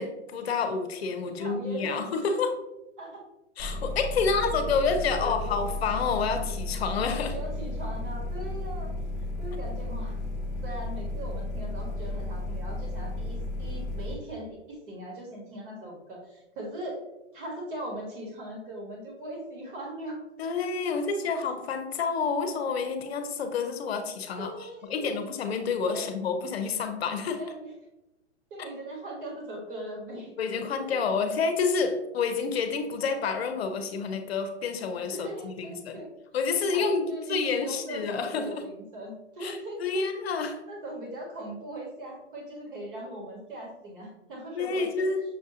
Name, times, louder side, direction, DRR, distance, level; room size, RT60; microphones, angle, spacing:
voice 1, 0.0-2.6 3.6-7.4 20.4-24.5 24.9-27.4 28.6-28.7 30.4-36.0 36.3-38.6 39.4-40.6 44.5-45.2, left 5 dB, 60° left, 7 dB, 0.7 m, -29 dB
voice 2, 1.2-2.0 3.0-3.2 4.2-4.7 5.1-5.3 7.3-8.9 9.4-10.2 10.6-17.0 17.3-20.2 24.4-25.2 25.9-26.0 27.4-27.7 28.5-30.3 30.9-31.0 35.0-36.1 36.7-40.0 40.7-45.1, right 1 dB, 45° right, -1 dB, 1.5 m, -39 dB
sound 1, 3.6-14.1, left 2 dB, 10° left, 0.6 m, -33 dB
6.3 x 2.4 x 2.7 m, 0.95 s
hypercardioid pair, 160°, 36 cm